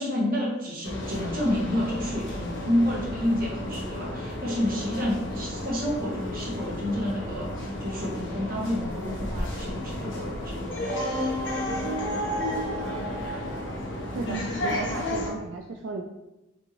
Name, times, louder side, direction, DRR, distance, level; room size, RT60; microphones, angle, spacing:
voice 1, 0.0-10.7, left 1 dB, 45° right, -4 dB, 1.2 m, -29 dB
sound 1, 0.8-15.3, left 1 dB, 70° left, 0.9 m, -32 dB
voice 2, 14.1-16.0, right 3 dB, 70° right, 2 dB, 0.4 m, -34 dB
5.3 x 2.7 x 3.0 m, 0.98 s
head